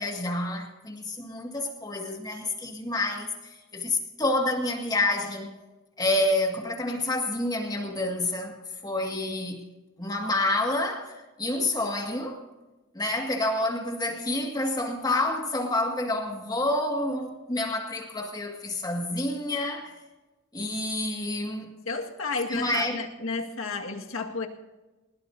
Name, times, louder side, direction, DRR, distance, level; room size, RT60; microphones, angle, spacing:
voice 1, 0.0-5.5 6.0-8.6 8.8-9.6 10.0-12.4 12.9-19.9 20.5-21.7 22.5-23.0, left 2 dB, 20° left, 2.0 m, -28 dB
voice 2, 21.9-24.5, left 4 dB, 75° left, 1.9 m, -32 dB
22.0 x 20.5 x 2.7 m
head